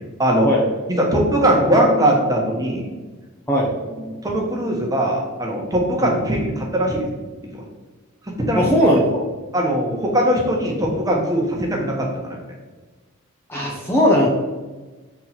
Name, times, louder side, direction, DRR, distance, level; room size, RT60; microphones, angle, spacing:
voice 1, 1.0-2.8 4.0-7.1 7.5-7.6 8.3-8.7 9.5-12.4, right 1 dB, 15° right, -1 dB, 1.3 m, -20 dB
voice 2, 8.5-9.2 13.5-14.3, equal, 10° left, -4 dB, 0.8 m, -18 dB
7.1 x 4.5 x 4.2 m, 1.2 s
head